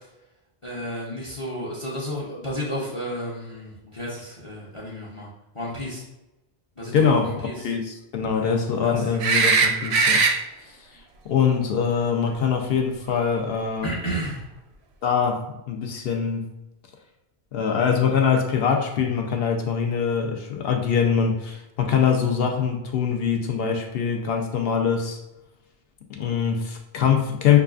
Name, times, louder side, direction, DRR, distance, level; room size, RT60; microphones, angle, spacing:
voice 1, 0.6-5.3 5.5-6.0 6.8-7.6 8.3-9.0 13.8-14.5, equal, 35° left, -5 dB, 0.7 m, -32 dB
voice 2, 6.9-10.2 11.3-13.9 15.0-16.5 17.5-25.2 26.1-27.6, left 7 dB, 70° left, 3 dB, 0.8 m, -23 dB
sound 1, 9.2-10.3 13.2-13.3, right 4 dB, 85° right, 0.8 m, -19 dB
5.7 x 2.3 x 2.4 m, 0.93 s
omnidirectional pair, 1.1 m